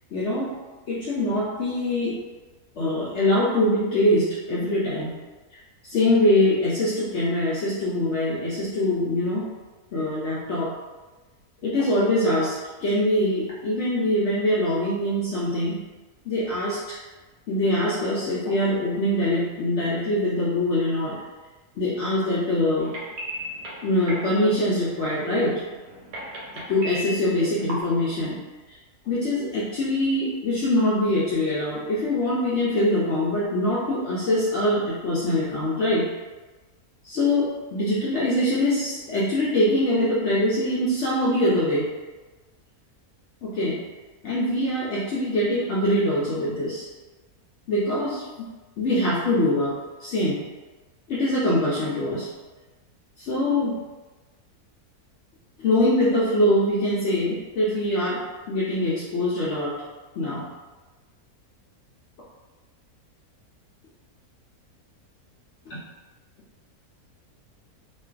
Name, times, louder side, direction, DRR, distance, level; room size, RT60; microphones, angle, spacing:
voice 1, 0.1-0.5 0.9-2.2 2.8-5.1 5.8-9.5 9.9-10.7 11.6-15.8 16.3-17.0 17.5-21.2 21.8-22.9 23.8-25.6 26.7-28.4 29.0-36.1 37.0-41.9 43.4-43.8 44.2-46.9 47.7-48.3 48.8-49.7 50.0-50.4 51.1-52.3 53.2-53.8 55.6-59.7 60.2-60.4 65.7-65.8, left 1 dB, 70° left, -7 dB, 0.7 m, -23 dB
sound 1, 22.8-27.8, equal, 85° right, 1.2 m, -37 dB
2.5 x 2.3 x 2.3 m, 1.2 s
omnidirectional pair, 1.6 m